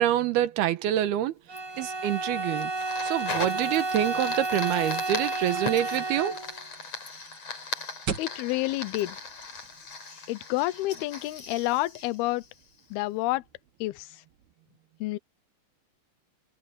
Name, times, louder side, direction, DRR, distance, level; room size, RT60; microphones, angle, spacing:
voice 1, 0.0-1.3 1.8-2.7 3.0-6.4, right 12 dB, 85° right, 3.2 m, -26 dB
Bowed string instrument, 1.5-6.7, right 3 dB, 25° right, 5.4 m, -31 dB
Fire, 1.6-12.9, left 4 dB, 40° left, 5.4 m, -39 dB
sound 1, 4.6-10.0, right 6 dB, 50° right, 1.3 m, -41 dB
voice 2, 8.2-9.2 10.3-12.4 12.9-13.4 13.8-14.2 15.0-15.2, left 18 dB, 85° left, 2.7 m, -29 dB
omnidirectional pair, 4.5 m